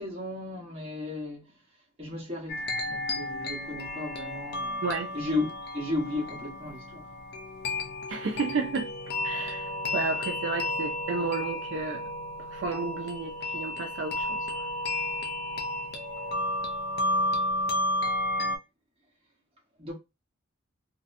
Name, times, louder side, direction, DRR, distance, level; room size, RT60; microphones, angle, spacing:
voice 1, 0.0-1.5 2.0-4.8 5.1-5.5 5.7-7.1 19.8-19.9, left 2 dB, 30° right, 0.9 m, -34 dB
sound 1, 2.5-18.6, left 1 dB, 50° left, 0.4 m, -32 dB
voice 2, 8.1-8.9 9.2-12.0 12.5-14.7, right 4 dB, 60° right, 0.3 m, -32 dB
2.7 x 2.0 x 2.5 m
head